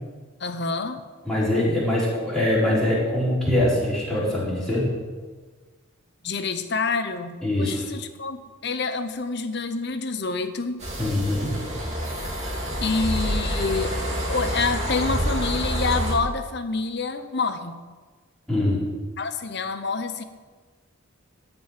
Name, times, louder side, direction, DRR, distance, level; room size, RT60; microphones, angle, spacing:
voice 1, 0.4-1.0 6.2-10.8 12.8-14.0 14.3-17.8 19.2-20.2, left 4 dB, 50° left, 9 dB, 0.9 m, -27 dB
voice 2, 1.2-4.9 7.4-7.9 11.0-11.5 18.5-18.8, left 1 dB, 5° left, -8 dB, 4.2 m, -23 dB
sound 1, 10.8-16.2, equal, 30° right, 2.3 m, -27 dB
15.0 x 5.4 x 9.0 m, 1.4 s
head